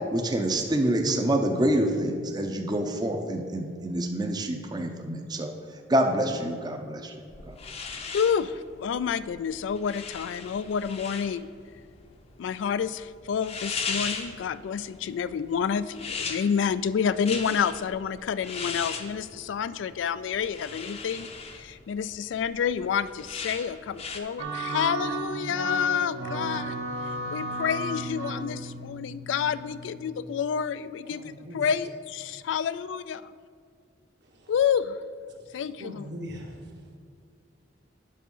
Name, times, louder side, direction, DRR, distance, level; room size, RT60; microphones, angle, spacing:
voice 1, 0.1-5.5 5.9-7.1 7.4-7.6, right 1 dB, 20° right, 4 dB, 0.6 m, -26 dB
sound 1, 7.3-24.2, left 5 dB, 35° left, 0.6 m, -38 dB
voice 2, 8.1-11.5 12.4-26.8 27.3-33.3 34.5-35.0 35.5-36.1, left 7 dB, 75° left, 15 dB, 0.3 m, -29 dB
sound 2, 24.4-30.1, right 2 dB, 80° right, 1.1 m, -34 dB
voice 3, 31.1-31.7 32.3-32.5 34.2-34.5 35.3-37.0, equal, 65° right, 1 dB, 1.4 m, -42 dB
8.5 x 6.0 x 5.5 m, 2.1 s
head